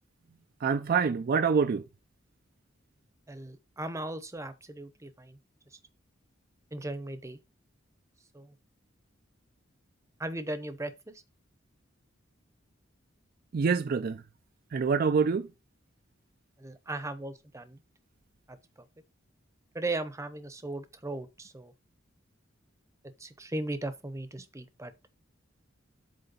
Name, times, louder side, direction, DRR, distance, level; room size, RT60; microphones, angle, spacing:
voice 1, 0.6-1.8 13.5-14.2 14.7-15.5, right 5 dB, 50° right, 0.4 m, -26 dB
voice 2, 3.3-5.4 6.7-7.4 8.3-8.5 10.2-11.2 16.6-17.8 18.5-18.9 19.7-21.7 23.2-24.9, right 2 dB, 15° right, 0.7 m, -37 dB
7.9 x 3.3 x 5.3 m
head